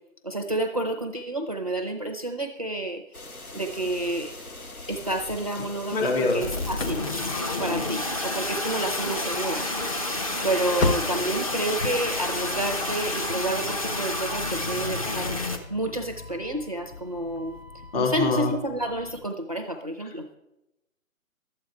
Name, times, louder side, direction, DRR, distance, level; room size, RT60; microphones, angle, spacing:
voice 1, 0.2-3.0 3.5-4.3 4.9-7.0 7.6-9.7 10.4-15.4 15.7-17.6 17.9-20.3, right 1 dB, 30° right, 5 dB, 0.5 m, -29 dB
sound 1, 3.1-13.3, left 2 dB, 90° left, 1.7 m, -41 dB
Engine starting / Slam, 4.5-5.9 6.2-19.3, left 4 dB, 65° left, 0.9 m, -38 dB
voice 2, 5.9-6.4 10.6-10.9 17.9-18.5 20.0-20.1, left 3 dB, 40° left, 1 dB, 2.4 m, -25 dB
sound 2, 6.4-15.6, left 2 dB, 25° left, 0.6 m, -29 dB
12.0 x 8.6 x 4.6 m, 0.91 s
figure-of-eight pair, 145°, 42 cm